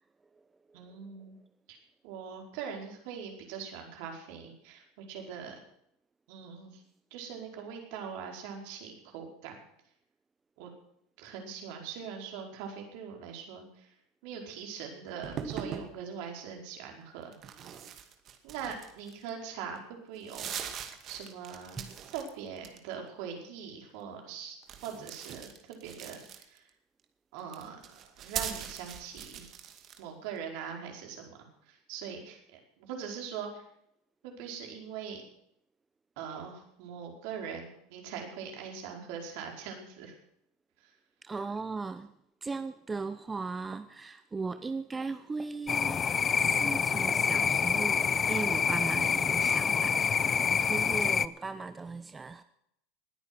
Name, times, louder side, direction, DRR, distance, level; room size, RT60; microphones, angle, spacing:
voice 1, 0.7-1.3 1.7-1.8 2.0-5.5 6.3-6.8 7.1-9.6 10.6-10.7 11.2-14.0 14.2-17.3 18.4-20.6 20.8-24.6 24.8-26.7 27.3-29.5 30.0-33.6 34.2-35.2 36.2-40.1 40.8-40.9, right 7 dB, 65° right, 4.8 m, -42 dB
sound 1, 15.2-15.9 17.3-19.3 19.7-19.8 20.1-22.3 22.6-23.1 24.6-26.7 27.4-30.0, right 8 dB, 45° right, 2.2 m, -41 dB
voice 2, 41.2-42.1 42.4-46.0 46.4-52.4, right 4 dB, 15° right, 0.8 m, -37 dB
sound 2, 45.7-51.3, left 6 dB, 30° left, 0.6 m, -27 dB
20.0 x 9.2 x 6.1 m
hypercardioid pair, 95°, 0 cm